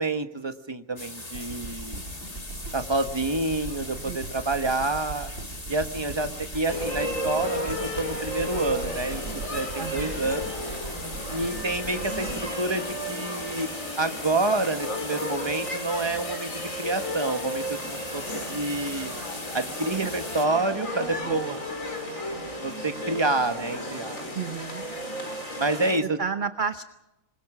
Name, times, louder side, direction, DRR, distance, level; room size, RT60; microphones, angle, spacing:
voice 1, 0.0-2.0 2.7-5.3 5.7-9.2 9.5-10.5 11.3-13.7 14.0-19.1 19.5-21.4 22.6-24.2 25.6-26.2, right 2 dB, 20° right, 7 dB, 1.3 m, -28 dB
sound 1, 1.0-20.5, left 2 dB, 25° left, 2.5 m, -40 dB
sound 2, 1.3-13.5 14.1-14.2, right 2 dB, 65° right, 2.8 m, -40 dB
sound 3, 6.7-26.0, equal, 65° left, 5.4 m, -34 dB
voice 2, 9.8-10.3 20.0-20.1 21.2-21.6 24.3-24.8 26.0-26.8, right 6 dB, 40° right, 9 dB, 0.9 m, -32 dB
26.5 x 22.0 x 6.2 m, 0.93 s
omnidirectional pair, 1.5 m